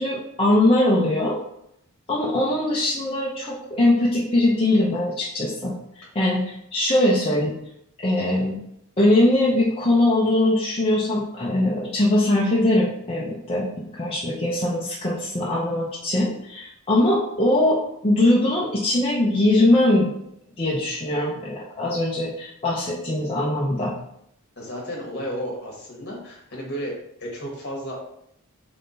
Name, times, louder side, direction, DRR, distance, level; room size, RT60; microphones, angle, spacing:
voice 1, 0.0-1.4 2.1-7.5 8.0-8.6 9.0-20.1 20.6-23.9, left 1 dB, 25° left, -6 dB, 0.6 m, -21 dB
voice 2, 24.6-28.0, equal, 45° left, -2 dB, 1.6 m, -33 dB
3.6 x 3.3 x 3.9 m, 0.74 s
head